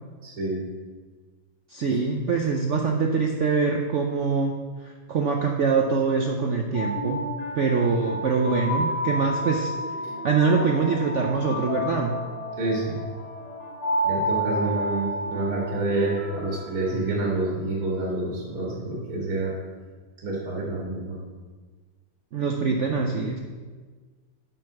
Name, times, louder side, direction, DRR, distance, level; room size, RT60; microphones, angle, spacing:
voice 1, 0.2-0.6 12.6-13.0 14.0-19.5 20.2-21.1, right 2 dB, 50° right, -5 dB, 2.1 m, -28 dB
voice 2, 1.7-4.6 4.8-7.2 7.5-9.7 10.2-12.2 22.3-23.4, right 4 dB, 75° right, 2 dB, 0.6 m, -24 dB
sound 1, 6.5-17.6, equal, 70° left, 2.9 m, -31 dB
8.4 x 5.4 x 5.9 m, 1.4 s
omnidirectional pair, 2.1 m